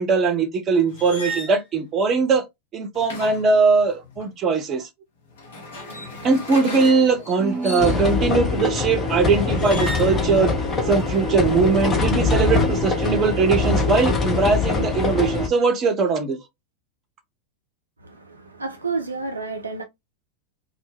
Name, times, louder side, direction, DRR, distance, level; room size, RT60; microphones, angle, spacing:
voice 1, 0.0-2.4 2.7-4.9 6.2-10.5 10.9-16.4, right 4 dB, 30° right, 0.6 m, -20 dB
sound 1, 0.9-1.6 2.9-4.3 5.3-8.3 9.6-10.2 10.6-11.2, equal, 60° left, 0.9 m, -35 dB
sound 2, 7.8-15.5, left 3 dB, 25° left, 0.6 m, -22 dB
voice 2, 18.0-19.8, right 4 dB, 80° right, 0.4 m, -30 dB
2.1 x 2.1 x 3.2 m
figure-of-eight pair, 90°, 0 cm